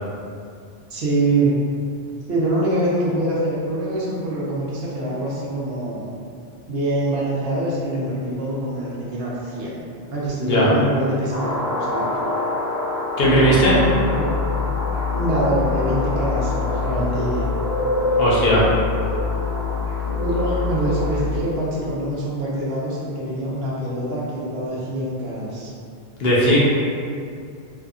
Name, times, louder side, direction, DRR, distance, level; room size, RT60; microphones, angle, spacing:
voice 1, 0.9-1.6 2.3-6.1 6.7-12.1 15.1-17.5 20.2-25.7, right 1 dB, 70° right, -6 dB, 0.8 m, -24 dB
voice 2, 10.4-10.7 13.2-13.8 18.2-18.7 26.2-26.6, equal, 65° left, -6 dB, 0.8 m, -17 dB
sound 1, 11.3-21.1, left 1 dB, 35° right, 0.8 m, -30 dB
sound 2, 13.2-21.4, left 3 dB, 5° right, 0.8 m, -24 dB
2.6 x 2.3 x 2.3 m, 2.4 s
omnidirectional pair, 1.1 m